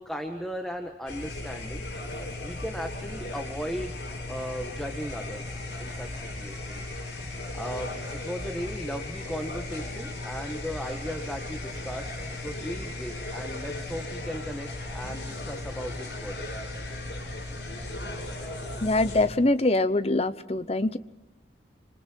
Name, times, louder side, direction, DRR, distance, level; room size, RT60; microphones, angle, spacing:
voice 1, 0.0-1.8 2.4-3.9 4.3-6.9 7.5-12.2 12.4-16.5, equal, 5° left, 3 dB, 1.6 m, -37 dB
sound 1, 1.1-19.3, left 2 dB, 75° left, 7.9 m, -36 dB
voice 2, 18.8-21.0, left 2 dB, 35° left, 13 dB, 0.9 m, -24 dB
27.0 x 26.5 x 4.6 m, 0.97 s
head